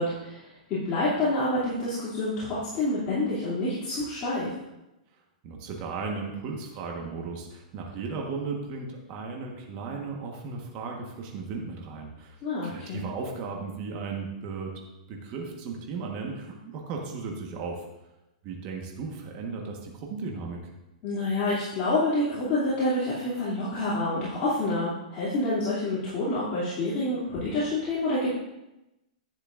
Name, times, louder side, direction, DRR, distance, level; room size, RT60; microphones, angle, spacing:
voice 1, 0.0-4.5 12.4-13.0 21.0-28.3, left 2 dB, 30° left, -10 dB, 2.7 m, -28 dB
voice 2, 5.4-12.4 12.6-14.7 15.1-17.8 18.4-20.7, right 4 dB, 35° right, 0 dB, 1.4 m, -36 dB
10.5 x 9.7 x 2.6 m, 0.95 s
hypercardioid pair, 155°, 4 cm